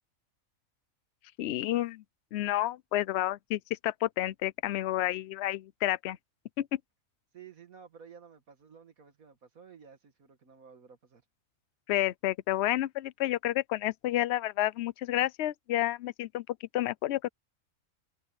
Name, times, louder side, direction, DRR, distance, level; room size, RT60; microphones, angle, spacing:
voice 1, 1.4-2.0 2.3-6.2 6.6-6.8 11.9-17.3, left 14 dB, 65° left, 0.7 m, -30 dB
voice 2, 7.3-11.2, right 7 dB, 80° right, 2.2 m, -53 dB
omnidirectional pair, 1.5 m